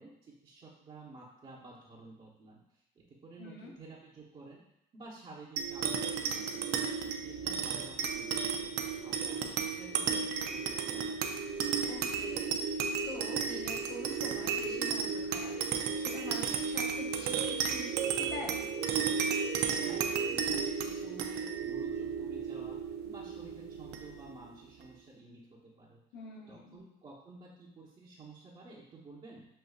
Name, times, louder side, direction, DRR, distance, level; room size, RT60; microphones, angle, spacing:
voice 1, 0.0-2.6 2.9-4.6 4.9-6.7 7.0-8.7 9.0-11.4 19.8-22.8 23.1-26.0 26.5-29.5, right 2 dB, 35° right, -8 dB, 0.9 m, -52 dB
voice 2, 3.4-3.7 11.8-18.6 26.1-26.8, left 2 dB, 80° left, -1 dB, 1.1 m, -45 dB
sound 1, 5.6-24.4, right 6 dB, 80° right, 0.5 m, -33 dB
6.5 x 2.6 x 2.4 m, 0.82 s
cardioid pair, 110°, 17 cm